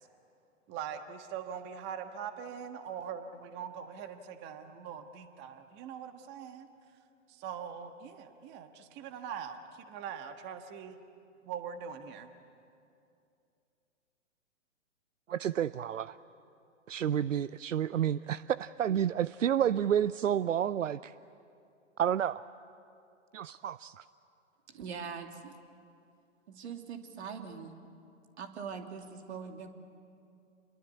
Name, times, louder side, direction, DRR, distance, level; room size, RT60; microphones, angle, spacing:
voice 1, 0.7-6.7 7.3-11.0 11.4-12.3, right 8 dB, 30° right, 8 dB, 1.5 m, -42 dB
voice 2, 15.3-16.2 16.9-21.1 22.0-22.4 23.3-24.0, right 9 dB, 80° right, 17 dB, 0.6 m, -30 dB
voice 3, 24.7-25.5 26.5-27.7 28.4-29.7, right 6 dB, 60° right, 5 dB, 2.8 m, -42 dB
28.5 x 22.0 x 8.4 m, 2.6 s
figure-of-eight pair, 120°, 38 cm